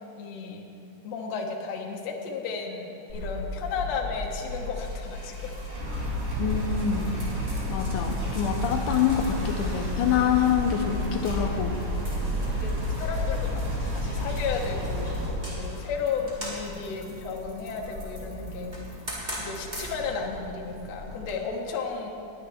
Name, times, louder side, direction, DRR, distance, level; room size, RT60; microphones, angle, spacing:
voice 1, 0.2-0.6 1.0-5.5 12.1-18.7 19.4-22.1, left 5 dB, 65° left, 1 dB, 2.0 m, -34 dB
sound 1, 3.1-21.3, left 1 dB, 15° right, 2.5 m, -39 dB
sound 2, 5.7-15.3, left 1 dB, 85° right, 3.9 m, -30 dB
voice 2, 6.4-7.2 7.7-11.8, left 8 dB, 80° left, 3 dB, 2.1 m, -26 dB
20.5 x 8.7 x 3.4 m, 2.8 s
omnidirectional pair, 3.7 m